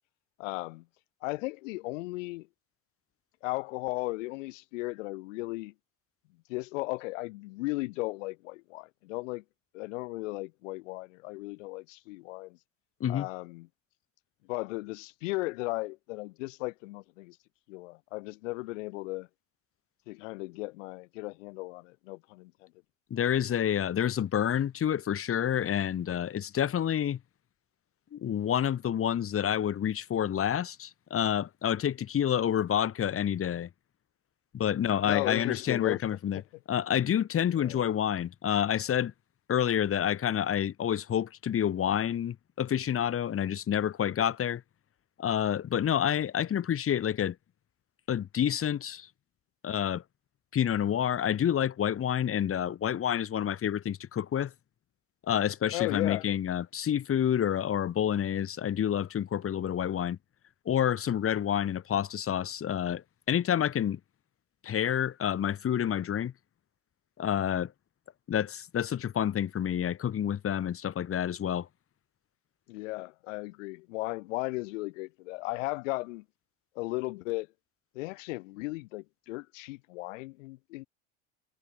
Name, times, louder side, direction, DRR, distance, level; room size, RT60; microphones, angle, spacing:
voice 1, 0.4-0.8 1.2-2.5 3.4-5.7 6.5-9.4 9.7-12.6 13.1-13.7 14.5-17.4 17.7-19.3 20.1-22.7 35.0-36.0 37.5-37.8 55.7-56.2 72.7-76.2 76.8-77.5 77.9-80.9, left 22 dB, 65° left, 4.1 m, -36 dB
voice 2, 23.1-27.2 28.1-33.7 34.5-36.4 36.7-39.1 39.5-44.6 45.2-47.4 48.1-49.1 49.6-50.0 50.5-54.5 55.3-60.2 60.7-64.0 64.6-66.3 67.2-67.7 68.3-71.7, left 9 dB, 35° left, 3.6 m, -28 dB
hypercardioid pair, 85°, 40 cm